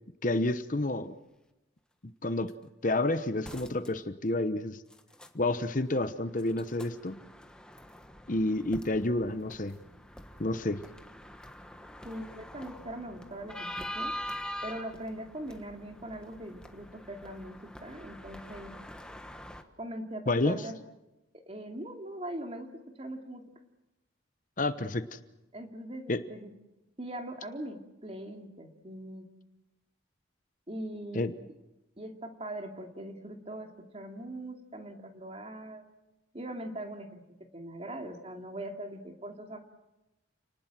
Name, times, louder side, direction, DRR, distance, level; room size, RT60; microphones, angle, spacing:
voice 1, 0.2-1.1 2.2-2.5 2.8-4.8 5.3-7.2 8.3-9.8 10.4-10.8 20.3-20.6 24.6-25.2 26.1-26.2 31.1-31.3, left 2 dB, 40° left, 11 dB, 1.0 m, -29 dB
sound 1, 2.5-2.6 3.4-3.9 4.9-5.3 6.3-19.6, equal, 5° left, 1.4 m, -44 dB
voice 2, 12.0-14.2 14.6-18.7 19.8-20.8 21.5-23.4 25.5-26.5 27.0-29.3 30.7-31.3 32.0-35.9 36.3-37.2 37.5-39.6, right 1 dB, 30° right, 4 dB, 2.7 m, -41 dB
29.5 x 19.5 x 7.6 m, 0.98 s
head